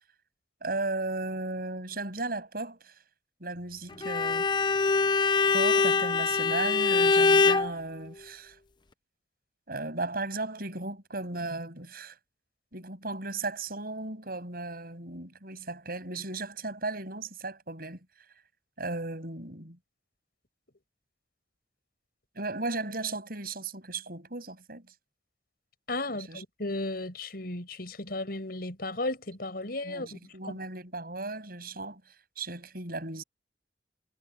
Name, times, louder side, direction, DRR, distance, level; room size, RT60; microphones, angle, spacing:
voice 1, 0.6-2.9 3.4-4.5 5.5-8.6 9.7-12.1 12.7-18.0 18.8-19.8 22.4-24.8 26.3-26.4 29.8-32.0 32.4-33.2, right 2 dB, 55° right, 7.1 m, -35 dB
Bowed string instrument, 4.0-7.7, left 4 dB, 25° left, 0.6 m, -23 dB
voice 2, 25.9-30.3, left 2 dB, 55° left, 5.6 m, -35 dB
head